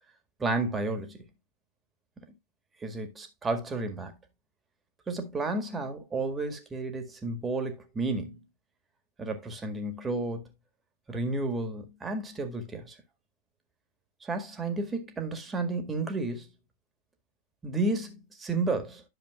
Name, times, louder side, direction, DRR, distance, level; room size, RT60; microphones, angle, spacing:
voice 1, 0.4-1.2 2.8-4.1 5.1-8.4 9.2-10.4 11.1-13.0 14.2-16.5 17.6-19.0, right 2 dB, 15° right, 1.8 m, -32 dB
11.0 x 6.7 x 2.3 m
figure-of-eight pair, 90°, 0 cm